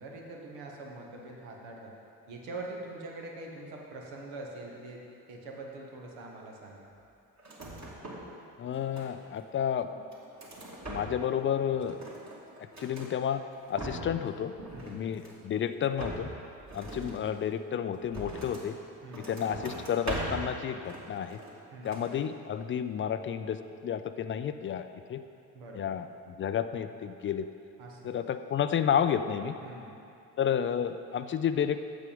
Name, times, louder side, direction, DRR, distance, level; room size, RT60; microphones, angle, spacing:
voice 1, 0.0-1.9 2.3-5.0 5.3-6.9 14.7-15.1 19.0-19.4 21.7-22.0 25.5-26.0 27.8-28.1 29.6-30.0, right 2 dB, 70° right, 0 dB, 1.4 m, -44 dB
sound 1, 7.4-8.4 8.6-9.4 9.9-11.4 11.7-13.1 13.5-14.2 14.5-15.5 15.9-18.7 19.1-20.5 20.8-21.6 21.8-22.2, right 2 dB, 35° right, 2.5 m, -41 dB
voice 2, 8.6-9.9 10.9-12.0 12.8-13.4 13.7-14.5 14.8-16.3 16.7-18.7 19.3-21.4 21.8-23.6 23.8-25.2 25.8-26.0 26.4-27.4 28.0-29.5 30.4-31.8, left 8 dB, 30° left, 10 dB, 0.4 m, -31 dB
8.4 x 7.5 x 5.2 m, 2.6 s
figure-of-eight pair, 45°, 47 cm